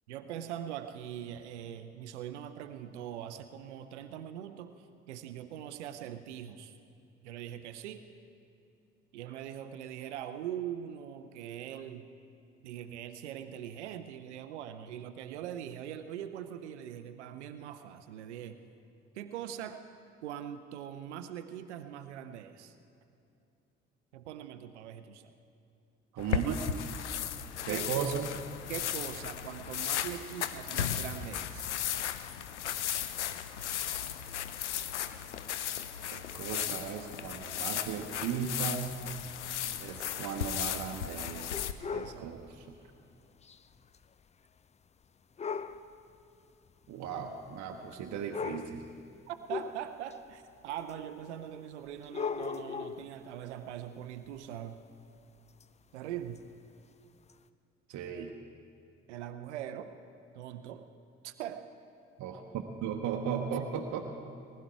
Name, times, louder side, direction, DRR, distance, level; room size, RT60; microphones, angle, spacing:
voice 1, 0.1-4.7 5.1-6.7 7.2-8.0 9.1-12.0 12.6-18.6 19.1-19.8 20.2-22.7 24.1-25.3 27.7-28.1 28.7-31.6 41.9-42.4 49.3-54.8 55.9-56.4 59.1-59.9 60.3-60.9 61.2-61.7 63.7-63.9, right 10 dB, 75° right, 10 dB, 0.6 m, -42 dB
voice 2, 26.1-26.7 27.7-28.3 36.1-39.0 39.8-41.5 41.9-42.8 46.9-48.8 57.9-58.3 62.2-64.0, right 7 dB, 55° right, 3 dB, 1.0 m, -36 dB
sound 1, 26.2-41.7, left 9 dB, 85° left, 0.5 m, -36 dB
sound 2, 41.5-42.2 43.4-43.6 43.9-44.0 45.4-45.8 46.8-46.9 47.9-48.0 48.3-48.8 49.5-50.1 50.9-51.0 52.0-53.1 55.6-55.7 56.4-56.5 57.3-57.4, left 5 dB, 20° left, 0.4 m, -37 dB
19.5 x 11.5 x 4.6 m, 2.6 s
figure-of-eight pair, 45°, 34 cm